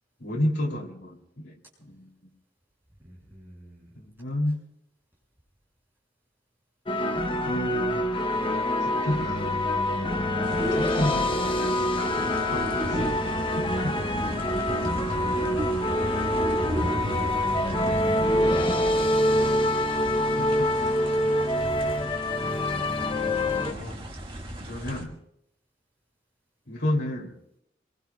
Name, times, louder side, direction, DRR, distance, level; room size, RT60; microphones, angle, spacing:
voice 1, 0.2-2.1 4.0-4.6 7.3-8.0 8.8-9.6 10.7-11.3 12.2-14.2 20.1-21.0 23.5-24.0 24.6-25.2 26.7-27.3, left 1 dB, 75° left, 0 dB, 3.0 m, -32 dB
voice 2, 3.0-4.0 4.4-4.5 9.8-10.1 14.6-14.7 15.0-18.6 21.3-21.4, right 1 dB, 10° right, -3 dB, 6.2 m, -46 dB
sound 1, 6.9-23.7, left 1 dB, 25° left, 0.8 m, -25 dB
sound 2, 10.4-25.1, right 1 dB, 25° right, 1.8 m, -36 dB
26.5 x 22.0 x 2.3 m, 0.75 s
head